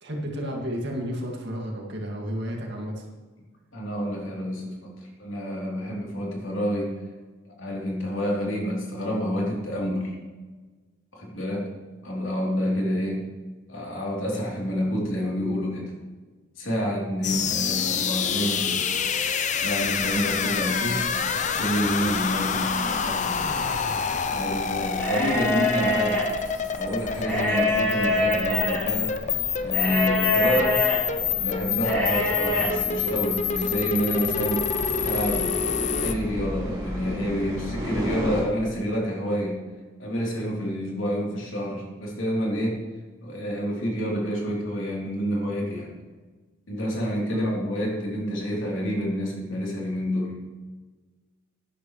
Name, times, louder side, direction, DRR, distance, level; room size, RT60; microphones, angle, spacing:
voice 1, 0.0-3.1 47.3-47.5, equal, 55° right, 0 dB, 2.1 m, -32 dB
voice 2, 3.7-7.0 7.4-10.1 11.1-11.7 12.0-13.2 13.7-15.9 16.5-18.9 19.6-21.0 21.5-23.6 24.3-26.2 26.7-30.8 31.3-34.7 35.0-39.6 40.0-42.8 43.2-45.9 46.7-50.3, equal, 70° left, -2 dB, 3.3 m, -28 dB
sound 1, 17.2-36.1, left 6 dB, 35° left, 0.6 m, -27 dB
sound 2, 19.8-38.4, equal, 20° right, 3.0 m, -37 dB
sound 3, 24.9-26.2 27.2-28.9 29.7-31.0 31.8-32.7, left 2 dB, 10° left, 3.6 m, -25 dB
12.0 x 10.0 x 3.2 m, 1.3 s
head